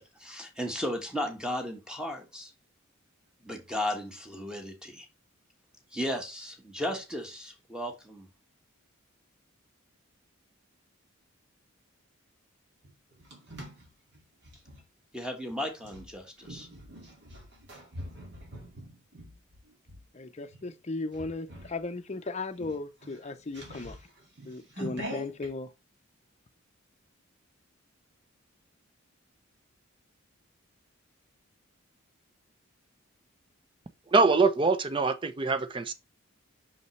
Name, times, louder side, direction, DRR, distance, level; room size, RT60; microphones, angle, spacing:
voice 1, 0.0-2.5 3.4-5.0 5.9-8.3 15.1-16.7, left 1 dB, 5° right, 1.3 m, -35 dB
sound 1, 12.8-14.8 15.8-20.0 20.5-20.8 21.1-21.8 22.1-22.2 22.5-25.5, equal, 55° right, 2.3 m, -44 dB
voice 2, 20.1-24.0 24.5-25.7, left 3 dB, 30° left, 0.6 m, -36 dB
voice 3, 34.1-35.9, right 3 dB, 25° right, 0.6 m, -24 dB
5.9 x 5.4 x 3.2 m
head